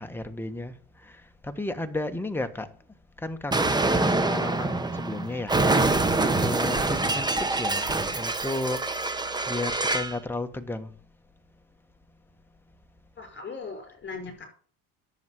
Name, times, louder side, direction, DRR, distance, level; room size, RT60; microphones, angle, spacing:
voice 1, 0.0-2.7 3.2-5.6 6.2-8.9 9.5-10.9, left 2 dB, 5° left, 1.3 m, -33 dB
Explosion, 3.5-10.2, right 2 dB, 10° right, 1.1 m, -25 dB
voice 2, 13.2-14.4, left 4 dB, 30° left, 5.2 m, -38 dB
10.5 x 7.3 x 7.8 m
cardioid pair, 125°, 36 cm